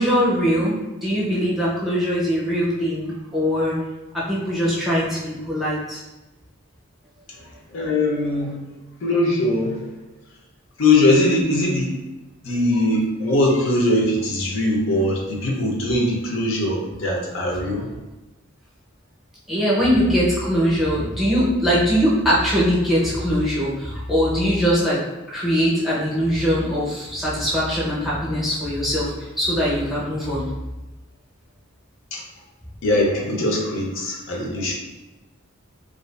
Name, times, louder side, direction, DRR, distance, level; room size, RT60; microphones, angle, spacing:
voice 1, 0.0-3.8 4.1-6.0 19.5-25.0 25.3-30.4, equal, ahead, -7 dB, 0.6 m, -21 dB
voice 2, 7.4-8.6 9.0-9.9 10.8-11.9 12.4-17.9 32.1-32.2 32.8-34.7, left 1 dB, 75° left, -1 dB, 0.5 m, -21 dB
2.4 x 2.3 x 2.3 m, 1.1 s
head